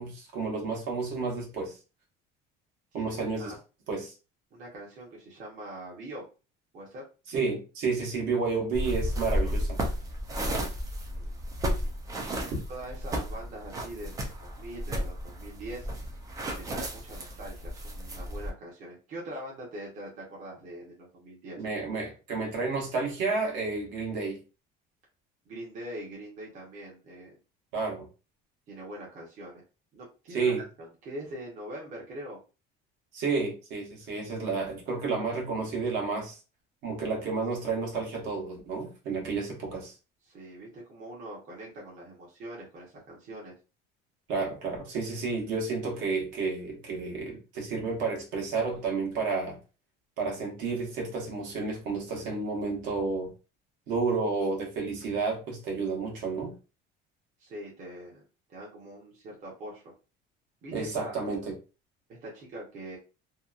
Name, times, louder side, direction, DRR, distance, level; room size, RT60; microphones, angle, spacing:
voice 1, 0.0-1.8 2.9-3.5 3.9-4.1 7.3-9.8 21.6-24.4 27.7-28.1 30.3-30.6 33.1-36.4 36.8-39.9 44.3-49.6 50.2-53.3 53.9-56.6 60.7-61.5, right 4 dB, 60° right, 1.0 m, -31 dB
voice 2, 4.5-6.3 6.7-7.1 11.1-11.4 11.8-11.9 12.7-15.9 16.5-21.6 25.5-27.4 28.7-29.6 29.9-32.4 40.3-43.6 57.4-58.2 58.5-59.8 60.6-61.1 62.1-63.0, right 1 dB, 35° right, 0.8 m, -43 dB
sound 1, 8.7-18.5, equal, 15° right, 0.3 m, -33 dB
2.8 x 2.2 x 2.3 m
cardioid pair, 180°, 21 cm